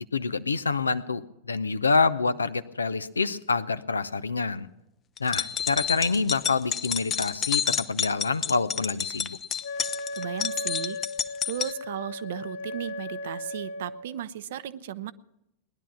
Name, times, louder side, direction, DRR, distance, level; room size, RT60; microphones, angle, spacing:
voice 1, 0.1-4.7 5.2-9.4, left 4 dB, 75° left, 15 dB, 0.6 m, -27 dB
sound 1, 5.2-11.7, left 8 dB, 25° left, 0.6 m, -29 dB
Wind instrument woodwind instrument, 9.6-14.1, left 2 dB, 55° left, 1.7 m, -36 dB
voice 2, 10.2-11.0 11.4-15.1, right 11 dB, 55° right, 15 dB, 0.7 m, -35 dB
19.5 x 11.5 x 6.1 m, 0.87 s
figure-of-eight pair, 90°, 0 cm